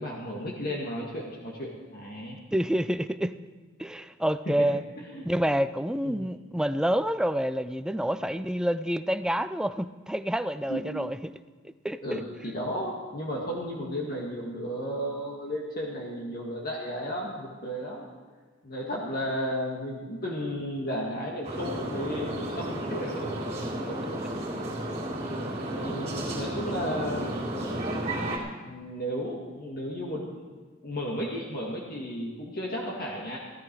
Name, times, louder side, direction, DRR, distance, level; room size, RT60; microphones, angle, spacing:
voice 1, 0.0-2.4 4.6-4.7 5.1-5.2 6.0-6.3 10.7-10.9 12.0-18.0 18.6-23.4 23.9-24.0 25.7-27.4 28.6-30.4 30.8-33.4, equal, 50° left, -3 dB, 1.9 m, -34 dB
voice 2, 2.5-3.3 3.8-4.8 5.3-11.3 11.8-12.2, equal, 5° right, 12 dB, 0.4 m, -28 dB
sound 1, 21.4-28.4, right 1 dB, 35° right, 3.4 m, -32 dB
16.0 x 13.0 x 4.7 m, 1.4 s
head